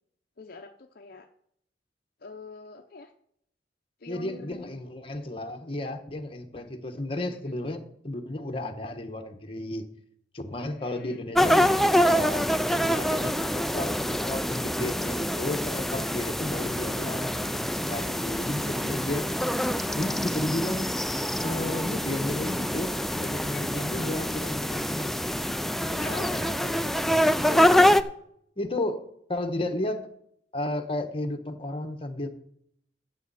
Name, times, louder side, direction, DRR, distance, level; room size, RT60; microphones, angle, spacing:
voice 1, 0.4-1.3 2.2-3.1 4.0-4.7 7.3-7.6 10.6-11.3 12.7-13.5 23.5-25.1 26.3-26.5 28.2-28.3, left 3 dB, 55° left, 4 dB, 0.7 m, -46 dB
voice 2, 4.1-9.8 10.3-12.4 12.9-19.3 19.9-20.9 21.4-25.1 25.8-27.9 28.6-29.0 29.3-30.0 30.5-32.3, left 1 dB, 30° left, 5 dB, 1.2 m, -33 dB
sound 1, 11.3-28.0, equal, ahead, 0.4 m, -26 dB
15.0 x 7.4 x 4.1 m, 0.70 s
head